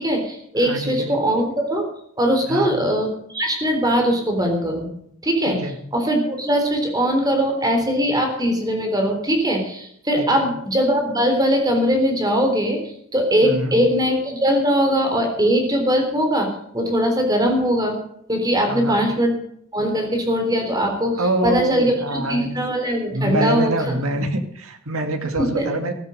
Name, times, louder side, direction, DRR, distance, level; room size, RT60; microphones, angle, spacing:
voice 1, 0.0-1.8 2.2-4.9 5.2-5.6 5.9-18.0 18.3-19.4 19.7-24.0 25.4-25.7, equal, 15° right, 3 dB, 3.6 m, -21 dB
voice 2, 0.6-1.1 2.5-2.8 5.5-5.7 10.2-10.5 13.4-13.7 18.7-19.0 21.2-22.5 23.1-25.9, right 1 dB, 75° right, 6 dB, 2.4 m, -25 dB
14.5 x 13.5 x 5.1 m, 0.69 s
head